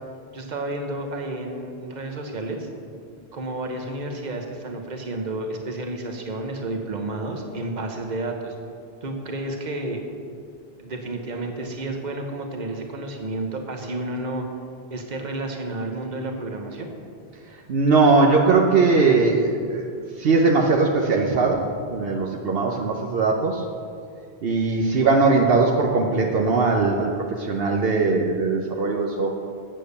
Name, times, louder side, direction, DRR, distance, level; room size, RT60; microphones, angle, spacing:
voice 1, 0.3-2.7 3.3-8.5 9.0-10.0 10.8-14.4 14.9-16.9, right 2 dB, 45° right, 3 dB, 1.2 m, -31 dB
voice 2, 17.7-19.8 20.2-23.6 24.4-27.1 27.4-29.3, right 3 dB, 70° right, 0 dB, 1.0 m, -20 dB
8.7 x 7.6 x 6.6 m, 2.3 s
omnidirectional pair, 1.0 m